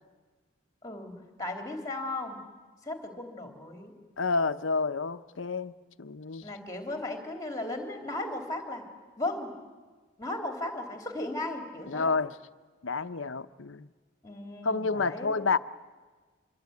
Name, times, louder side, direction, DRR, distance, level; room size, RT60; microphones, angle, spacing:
voice 1, 0.8-1.1 1.4-2.4 2.8-3.9 6.4-8.8 9.2-9.5 10.2-12.1 14.2-15.4, left 2 dB, 15° left, 3.5 m, -36 dB
voice 2, 4.2-6.4 11.9-12.4 12.8-13.9 14.6-15.6, left 4 dB, 75° left, 0.8 m, -29 dB
25.0 x 23.5 x 9.6 m
head